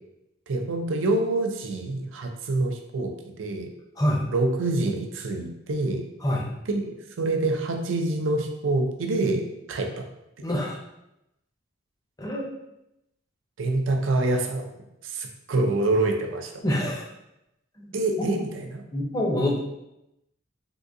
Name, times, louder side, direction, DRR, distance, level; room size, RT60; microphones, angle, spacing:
voice 1, 0.5-3.7 4.3-6.0 6.7-9.4 9.7-10.0 10.5-10.6 13.6-14.7 15.0-16.5 17.9-18.8, right 2 dB, 75° right, 4 dB, 0.5 m, -26 dB
voice 2, 10.4-10.8 12.2-12.5 16.6-17.1 17.8-18.0 18.9-19.6, left 1 dB, 20° left, -2 dB, 0.5 m, -26 dB
3.6 x 2.6 x 2.6 m, 0.87 s
head